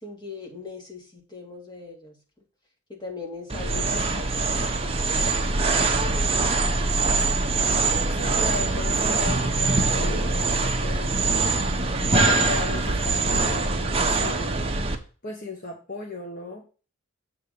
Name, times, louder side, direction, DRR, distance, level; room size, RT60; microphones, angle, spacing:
voice 1, 0.0-2.2 2.9-5.6, left 3 dB, 20° left, 0 dB, 2.2 m, -40 dB
sound 1, 3.5-14.9, right 3 dB, 30° right, 0.9 m, -23 dB
voice 2, 8.2-11.5 12.1-14.7 15.2-16.7, left 2 dB, 45° left, 1 dB, 1.2 m, -37 dB
7.5 x 3.7 x 6.6 m, 0.35 s
head